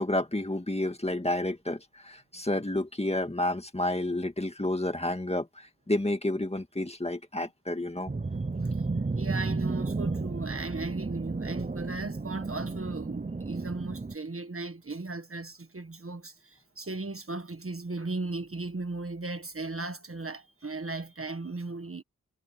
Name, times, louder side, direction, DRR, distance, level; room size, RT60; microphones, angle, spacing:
voice 1, 0.0-8.1, left 1 dB, 20° left, 2.0 m, -30 dB
sound 1, 8.1-14.1, right 3 dB, 25° right, 0.8 m, -32 dB
voice 2, 8.6-22.0, right 3 dB, 40° right, 1.6 m, -37 dB
wide cardioid pair, 70°, 33 cm